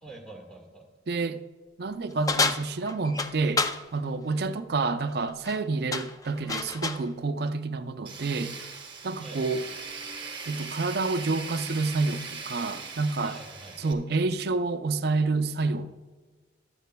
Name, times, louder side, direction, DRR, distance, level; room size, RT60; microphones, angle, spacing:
voice 1, 0.0-0.9 9.2-9.4 13.2-13.9, right 2 dB, 5° left, 1.7 m, -46 dB
voice 2, 1.1-1.4 1.8-3.7 3.9-8.5 9.0-9.6 10.5-13.4 13.8-15.9, right 3 dB, 55° right, 0.5 m, -28 dB
sound 1, 2.3-3.8 5.3-5.6 5.9-7.1, left 4 dB, 20° left, 0.4 m, -29 dB
Tools, 8.1-13.9, right 4 dB, 25° right, 1.1 m, -40 dB
15.0 x 12.0 x 2.3 m
head